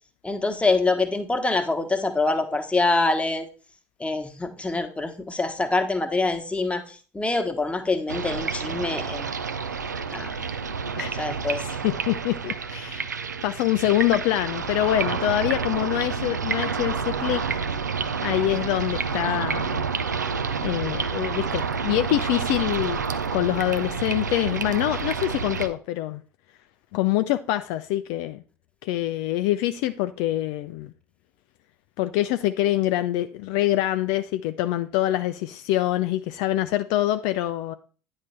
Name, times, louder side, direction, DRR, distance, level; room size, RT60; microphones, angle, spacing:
voice 1, 0.2-3.5 4.0-9.2 10.1-10.3 11.1-11.7, left 3 dB, 15° left, 1.2 m, -25 dB
sound 1, 8.1-25.7, right 5 dB, 85° right, 0.4 m, -29 dB
voice 2, 11.8-13.1 13.4-17.4 18.2-19.8 20.6-23.0 23.3-26.2 26.9-28.4 28.8-30.9 32.0-37.7, left 14 dB, 60° left, 0.4 m, -25 dB
9.5 x 3.2 x 5.7 m
figure-of-eight pair, 60°, 9 cm